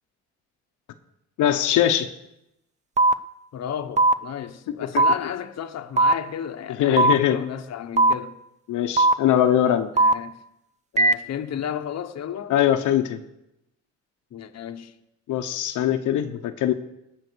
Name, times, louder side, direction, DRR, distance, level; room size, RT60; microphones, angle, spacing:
voice 1, 1.4-2.1 4.9-5.0 6.8-7.4 8.7-9.9 12.5-13.2 15.3-16.7, left 11 dB, 85° left, 1.0 m, -21 dB
sound 1, 3.0-3.1 4.0-4.1 5.0-5.1 6.0-6.1 7.0-7.1 8.0-8.1 9.0-9.1 10.0-10.1 11.0-11.1, right 2 dB, 25° right, 0.6 m, -17 dB
voice 2, 3.5-8.4 9.9-10.4 10.9-12.6 14.3-14.9, left 9 dB, 60° left, 1.1 m, -33 dB
18.5 x 6.4 x 6.3 m
cardioid pair, 90°, 30 cm